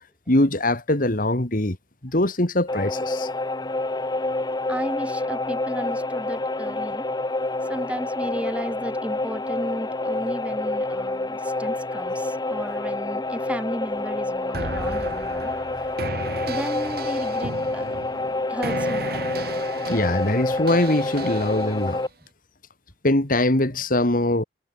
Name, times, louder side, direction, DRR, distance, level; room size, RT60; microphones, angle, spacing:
voice 1, 0.3-1.8 2.0-3.3 19.9-22.0 23.0-24.4, left 1 dB, 50° left, 2.7 m, -22 dB
sound 1, 2.7-22.1, left 2 dB, 25° left, 1.1 m, -28 dB
voice 2, 4.7-7.1 7.6-15.5 16.5-17.9 18.5-19.1, equal, 5° right, 3.2 m, -34 dB
sound 2, 14.5-21.9, right 2 dB, 60° right, 4.7 m, -34 dB
head